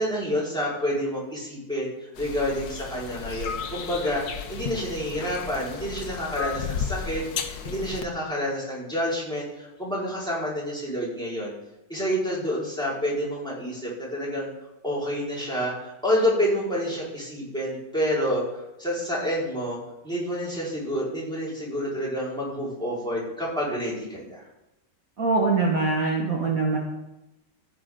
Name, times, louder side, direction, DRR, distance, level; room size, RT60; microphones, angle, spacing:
voice 1, 0.0-11.5 11.9-14.5 14.8-19.8 20.0-24.4, equal, ahead, -7 dB, 4.6 m, -28 dB
sound 1, 2.2-8.0, left 7 dB, 65° left, 1.4 m, -34 dB
voice 2, 25.2-26.8, right 3 dB, 55° right, -1 dB, 1.9 m, -23 dB
14.5 x 9.6 x 3.8 m, 0.93 s
omnidirectional pair, 1.9 m